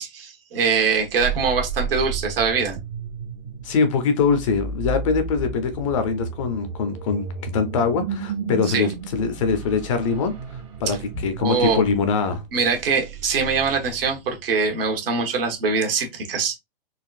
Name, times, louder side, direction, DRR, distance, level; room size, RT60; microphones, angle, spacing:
voice 1, 0.0-2.8 8.7-8.9 10.9-11.0 11.4-11.8 12.5-16.6, right 5 dB, 65° right, 1.4 m, -23 dB
sound 1, 0.9-14.4, right 5 dB, 30° right, 0.7 m, -33 dB
voice 2, 3.6-7.3 7.5-11.0 11.2-12.4, left 5 dB, 30° left, 0.5 m, -23 dB
4.0 x 2.4 x 2.4 m
hypercardioid pair, 150°, 30 cm